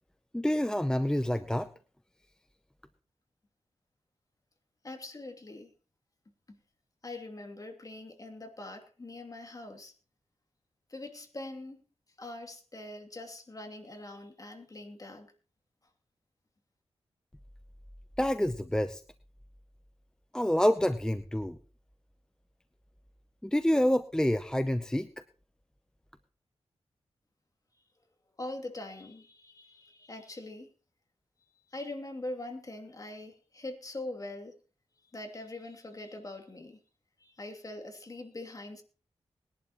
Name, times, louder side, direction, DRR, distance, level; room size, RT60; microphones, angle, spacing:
voice 1, 0.3-1.7 18.2-19.0 20.3-21.6 23.4-25.1, left 1 dB, 5° left, 0.7 m, -27 dB
voice 2, 4.8-5.7 6.5-6.6 7.0-9.9 10.9-11.8 12.2-15.3 28.4-30.7 31.7-34.5 35.1-36.8 37.2-38.8, left 2 dB, 35° left, 2.8 m, -43 dB
20.5 x 11.0 x 3.0 m
wide cardioid pair, 85°, 10 cm